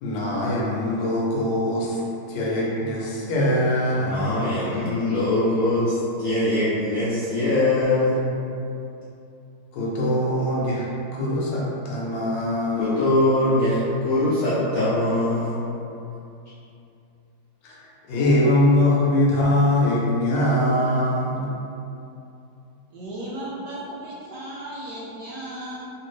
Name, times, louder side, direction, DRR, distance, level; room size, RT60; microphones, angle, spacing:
voice 1, 0.0-2.0 2.3-4.2 9.7-13.0 17.6-21.5, left 1 dB, 75° left, -5 dB, 1.3 m, -22 dB
voice 2, 4.0-8.2 12.8-15.7, left 1 dB, 90° left, -10 dB, 0.7 m, -22 dB
voice 3, 22.9-25.9, right 1 dB, 70° right, -6 dB, 1.0 m, -35 dB
3.3 x 2.8 x 3.1 m, 2.7 s
omnidirectional pair, 2.1 m